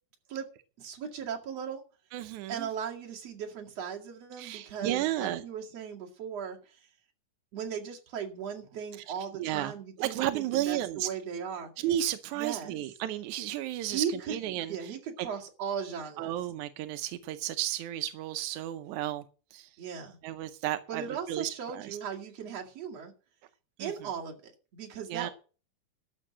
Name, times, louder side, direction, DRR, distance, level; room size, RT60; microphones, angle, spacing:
voice 1, 0.8-1.8 2.5-6.8 7.5-11.7 12.3-12.7 13.9-16.4 19.8-20.2 20.9-23.1 23.8-25.3, right 7 dB, 50° right, 0 dB, 3.0 m, -37 dB
voice 2, 2.1-2.7 4.4-5.4 9.4-9.7 10.0-11.1 11.8-15.3 16.2-19.3 19.5-19.7 20.2-22.0 23.8-24.1 25.1-25.3, right 13 dB, 80° right, 10 dB, 1.7 m, -33 dB
13.0 x 6.8 x 7.2 m, 0.38 s
omnidirectional pair, 4.2 m